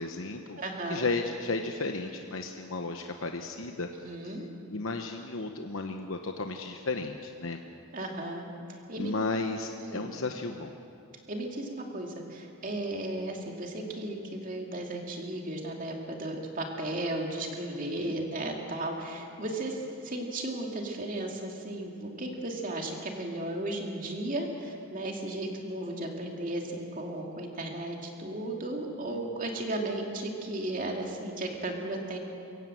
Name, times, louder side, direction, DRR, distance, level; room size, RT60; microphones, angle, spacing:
voice 1, 0.0-0.6 0.9-3.9 4.2-7.6 9.0-10.7 18.0-18.3 29.0-29.2, left 3 dB, 65° left, 5 dB, 1.0 m, -34 dB
voice 2, 0.6-1.0 4.0-4.5 7.9-8.5 8.9-9.1 9.8-10.0 11.3-32.2, right 1 dB, 40° right, 1 dB, 2.7 m, -35 dB
23.0 x 16.5 x 7.8 m, 2.9 s
head